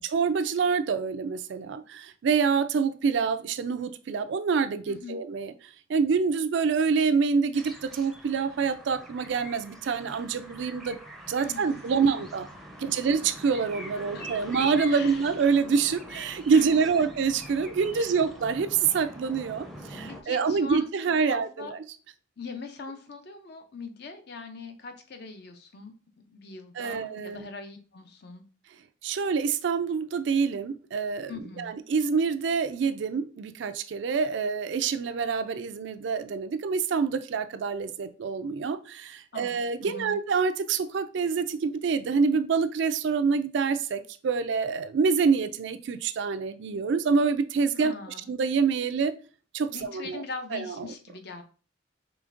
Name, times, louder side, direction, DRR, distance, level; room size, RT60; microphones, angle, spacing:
voice 1, 0.0-5.5 5.9-11.0 11.3-12.5 12.8-21.8 26.8-27.5 29.0-31.3 31.6-47.9 48.3-49.1 49.5-50.2 50.5-50.7, right 5 dB, 60° right, 11 dB, 0.3 m, -26 dB
voice 2, 4.9-5.2 11.4-12.2 12.8-12.9 14.1-14.5 14.9-15.3 16.5-17.1 17.9-18.2 20.1-21.7 22.4-25.9 26.3-28.4 31.3-31.7 39.3-40.2 47.8-48.3 49.7-51.4, left 4 dB, 55° left, 6 dB, 0.6 m, -42 dB
sound 1, 7.5-20.2, equal, ahead, 0.6 m, -44 dB
5.0 x 3.1 x 2.5 m, 0.38 s
head